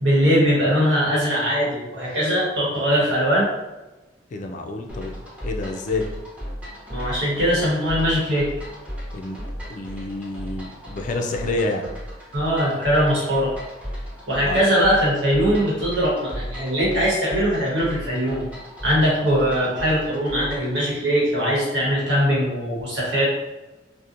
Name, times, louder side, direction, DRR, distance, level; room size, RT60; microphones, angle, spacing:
voice 1, 0.0-3.5 6.9-8.5 12.3-13.5 14.3-18.4 18.8-23.2, equal, 85° right, -5 dB, 1.0 m, -21 dB
voice 2, 4.3-5.1 5.4-6.1 9.1-9.4 9.7-11.9 14.4-14.6, left 2 dB, 45° left, 3 dB, 0.3 m, -28 dB
sound 1, 4.9-20.7, equal, 10° right, 0.7 m, -36 dB
2.7 x 2.1 x 2.5 m, 1.1 s
head